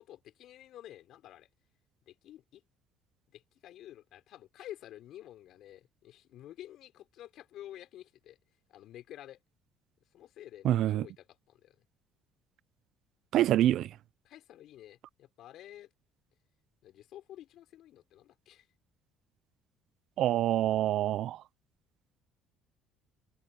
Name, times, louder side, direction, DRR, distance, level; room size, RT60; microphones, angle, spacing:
voice 1, 0.0-1.5 2.1-2.6 3.3-8.4 8.7-9.4 10.1-11.8 14.2-15.9 16.8-18.7, left 12 dB, 65° left, 5.8 m, -50 dB
voice 2, 10.6-11.1 13.3-13.9 20.2-21.4, right 13 dB, 60° right, 0.5 m, -26 dB
cardioid pair, 120°, 0 cm